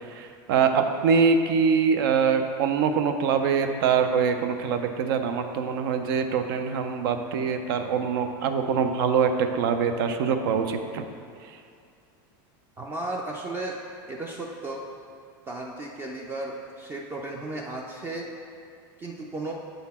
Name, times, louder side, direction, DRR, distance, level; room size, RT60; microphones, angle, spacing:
voice 1, 0.1-11.0, right 6 dB, 70° right, 7 dB, 0.5 m, -24 dB
voice 2, 12.8-13.8 14.1-14.8 15.5-18.3 19.0-19.5, right 2 dB, 20° right, -1 dB, 0.4 m, -34 dB
7.7 x 4.0 x 4.2 m, 2.4 s
supercardioid pair, 150°, 12 cm